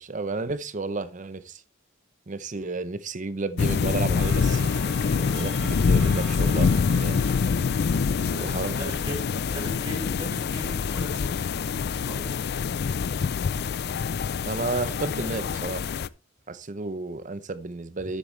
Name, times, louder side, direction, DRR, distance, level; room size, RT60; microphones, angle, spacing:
voice 1, 0.0-1.6 2.3-7.3 8.4-8.9 14.5-15.8 16.5-18.2, right 3 dB, 40° right, 0.7 m, -32 dB
sound 1, 3.6-16.1, left 5 dB, 50° left, 0.4 m, -25 dB
Clock, 4.2-10.2, right 7 dB, 75° right, 1.2 m, -46 dB
voice 2, 8.1-9.2 9.5-11.3 12.1-12.3, equal, 15° right, 5.4 m, -38 dB
12.0 x 8.3 x 3.2 m
head